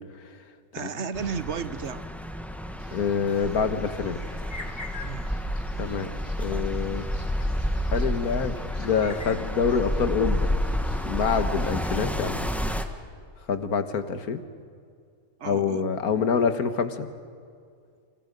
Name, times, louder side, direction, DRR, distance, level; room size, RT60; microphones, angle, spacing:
voice 1, 0.7-2.0 5.0-5.3 15.4-15.8, right 7 dB, 55° right, 13 dB, 1.0 m, -33 dB
sound 1, 1.1-12.8, equal, ahead, 1.3 m, -30 dB
sound 2, 2.8-11.9, left 2 dB, 30° left, 2.5 m, -47 dB
voice 2, 2.9-4.2 5.8-6.1 6.4-7.0 7.9-10.5 11.0-12.5 13.5-14.4 15.4-17.1, left 6 dB, 85° left, 10 dB, 1.9 m, -26 dB
30.0 x 27.5 x 5.4 m, 2.2 s
omnidirectional pair, 1.5 m